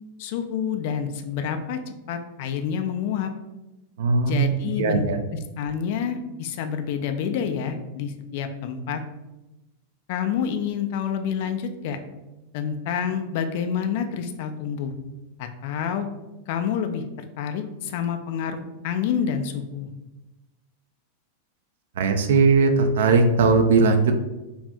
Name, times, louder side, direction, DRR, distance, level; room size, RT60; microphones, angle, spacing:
voice 1, 0.2-1.8 2.1-3.3 4.3-5.0 5.3-9.0 10.1-12.0 12.5-14.9 15.4-16.1 16.5-17.0 17.4-18.6 18.8-19.9, left 7 dB, 50° left, 7 dB, 0.3 m, -28 dB
voice 2, 4.0-4.4 4.8-5.2 22.0-24.1, right 4 dB, 60° right, 7 dB, 0.3 m, -18 dB
2.5 x 2.4 x 3.3 m, 1.0 s
figure-of-eight pair, 90°, 0 cm